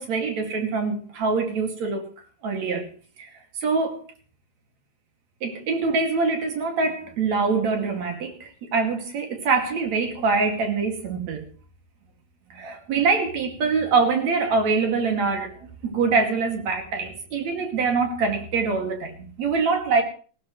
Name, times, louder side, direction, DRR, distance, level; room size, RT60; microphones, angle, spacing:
voice 1, 0.0-2.1 2.4-2.9 3.2-3.3 3.6-4.0 5.4-11.5 12.5-15.5 15.8-20.0, right 4 dB, 55° right, 3.4 m, -24 dB
19.0 x 16.5 x 3.2 m
omnidirectional pair, 4.0 m